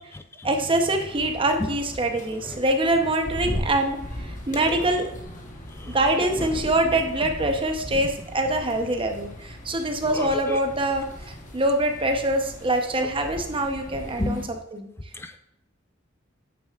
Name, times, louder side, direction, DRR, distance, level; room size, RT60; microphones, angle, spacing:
voice 1, 0.4-5.1 5.9-11.1 11.5-14.9, right 1 dB, 25° right, 5 dB, 0.8 m, -24 dB
sound 1, 1.0-14.4, left 1 dB, 40° left, 1.0 m, -38 dB
voice 2, 10.1-10.6 14.2-14.5 15.1-15.4, left 2 dB, 10° left, 8 dB, 0.4 m, -31 dB
8.6 x 6.8 x 2.4 m, 0.77 s
head